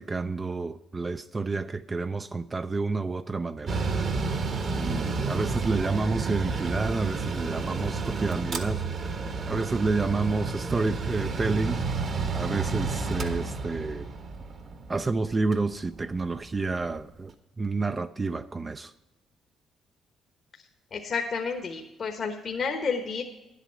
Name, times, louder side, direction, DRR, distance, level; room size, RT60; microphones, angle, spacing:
voice 1, 0.0-3.8 4.7-11.8 12.3-14.1 14.9-17.3 17.6-18.9, right 3 dB, 30° right, 0.4 m, -29 dB
Mechanical fan, 3.7-17.0, right 4 dB, 55° right, 1.3 m, -31 dB
voice 2, 20.9-23.2, left 5 dB, 55° left, 1.2 m, -30 dB
10.0 x 8.2 x 5.7 m
supercardioid pair, 60°, 0 cm